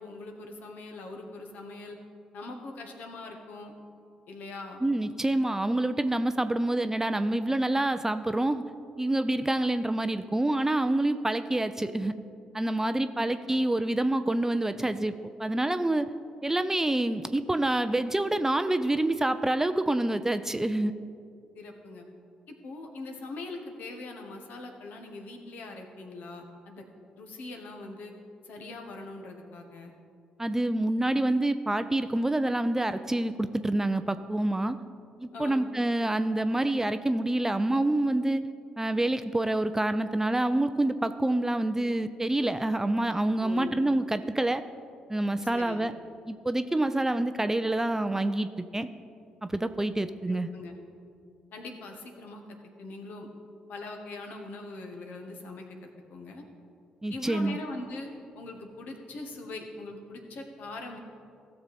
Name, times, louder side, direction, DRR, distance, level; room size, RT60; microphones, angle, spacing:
voice 1, 0.0-2.0 2.3-3.7 4.3-4.8 13.3-13.6 21.5-22.1 22.5-26.8 27.2-28.1 28.4-29.9 35.3-35.7 43.4-43.8 45.5-45.8 50.3-50.7 51.5-53.3 53.7-55.6 56.1-56.4 57.1-58.1 58.3-61.0, left 2 dB, 60° left, 3 dB, 1.5 m, -42 dB
voice 2, 4.8-8.6 9.0-12.1 12.5-15.1 15.4-16.1 16.4-20.9 30.4-34.8 35.2-38.4 38.8-44.6 45.1-45.9 46.3-48.9 49.4-50.5 57.0-57.6, right 1 dB, 15° right, 11 dB, 0.5 m, -27 dB
16.0 x 6.8 x 4.3 m, 2.4 s
hypercardioid pair, 45°, 3 cm